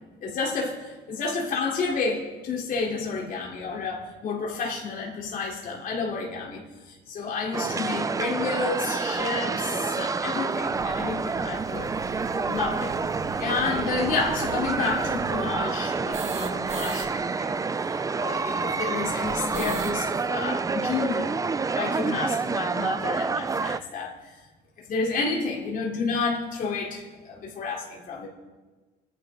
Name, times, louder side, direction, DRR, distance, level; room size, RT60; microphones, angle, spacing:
voice 1, 0.2-11.9 12.4-13.0 13.4-17.6 18.2-21.4 21.7-24.4 24.9-28.3, left 4 dB, 55° left, -3 dB, 3.9 m, -30 dB
sound 1, 7.5-23.8, right 4 dB, 20° right, 0.5 m, -28 dB
sound 2, 8.4-8.5 9.2-9.3 9.5-9.6 9.9-10.0 10.4-17.1 17.3-17.4 17.6-20.0, right 4 dB, 40° right, 1.8 m, -40 dB
29.5 x 11.5 x 3.9 m, 1.3 s
cardioid pair, 110°, 17 cm